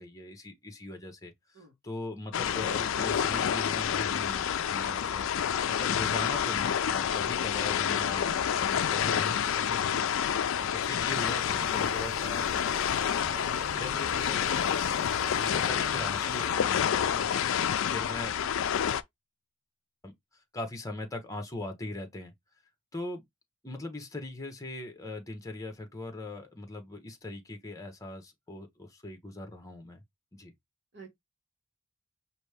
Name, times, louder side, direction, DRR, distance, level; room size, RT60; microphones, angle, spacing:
voice 1, 0.0-5.3 5.7-10.1 10.6-14.8 15.4-17.5 17.9-18.3 20.0-20.1 20.5-22.3 22.9-23.3 23.6-30.0 30.3-30.5, left 2 dB, 15° left, 0.9 m, -40 dB
voice 2, 1.5-1.7 30.9-31.1, right 5 dB, 55° right, 1.5 m, -51 dB
sound 1, 2.3-19.0, left 8 dB, 60° left, 0.4 m, -28 dB
sound 2, 3.1-11.1, right 7 dB, 5° right, 2.5 m, -58 dB
sound 3, 11.0-16.5, right 4 dB, 30° right, 0.5 m, -45 dB
5.1 x 2.7 x 3.3 m
head